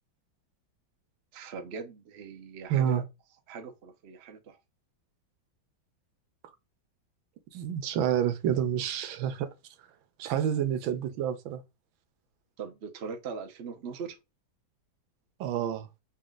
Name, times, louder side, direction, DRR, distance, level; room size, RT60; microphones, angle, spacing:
voice 1, 1.3-3.0 3.5-4.6 9.0-9.4 12.6-14.2, right 5 dB, 55° right, 0.7 m, -41 dB
voice 2, 2.7-3.0 7.5-9.5 10.2-11.6 15.4-15.9, right 9 dB, 90° right, 1.5 m, -28 dB
4.1 x 2.4 x 3.7 m
omnidirectional pair, 2.1 m